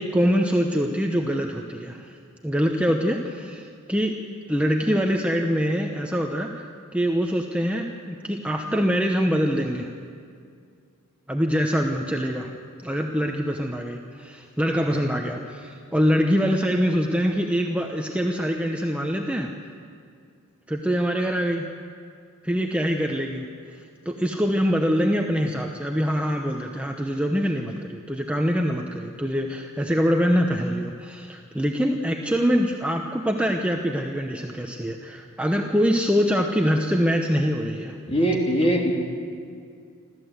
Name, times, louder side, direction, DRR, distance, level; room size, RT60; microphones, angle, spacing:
voice 1, 0.0-2.2 2.4-4.2 4.5-9.9 11.3-12.5 12.8-19.5 20.7-21.7 22.4-23.5 24.0-37.9, equal, 5° right, 2 dB, 0.9 m, -24 dB
voice 2, 38.1-38.9, equal, 25° left, -1 dB, 3.3 m, -21 dB
27.5 x 13.5 x 8.1 m, 2.3 s
head